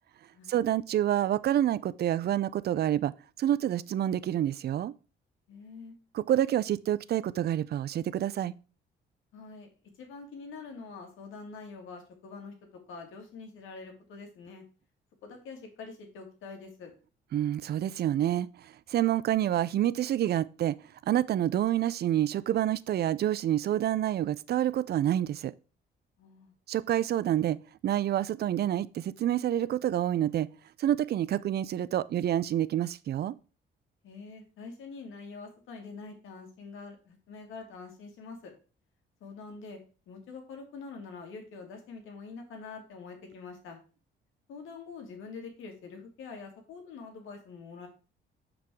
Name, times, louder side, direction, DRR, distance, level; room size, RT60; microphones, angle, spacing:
voice 1, 0.5-3.1 3.4-4.9 6.1-8.5 17.3-20.8 21.0-25.5 26.7-30.5 30.8-33.4, right 11 dB, 55° right, 0.4 m, -28 dB
voice 2, 5.5-5.9 9.3-9.7 10.0-14.6 15.2-16.9 26.2-26.5 34.0-38.5 39.2-39.8 40.1-43.8 44.5-47.9, left 4 dB, 85° left, 2.2 m, -45 dB
6.0 x 4.8 x 4.6 m
cardioid pair, 90°, 20 cm